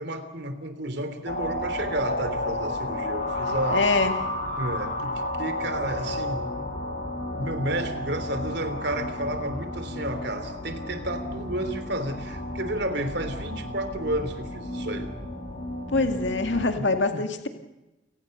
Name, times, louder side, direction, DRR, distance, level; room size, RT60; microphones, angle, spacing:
voice 1, 0.0-3.9 4.6-5.1 5.4-6.5 7.3-15.1 16.7-16.8 17.1-17.2, right 1 dB, 60° right, 10 dB, 3.2 m, -31 dB
sound 1, 1.3-16.7, left 1 dB, 40° left, 5.8 m, -32 dB
voice 2, 3.7-4.2 15.9-17.5, left 3 dB, 65° left, 6 dB, 2.1 m, -24 dB
29.5 x 18.5 x 6.6 m, 1.0 s
head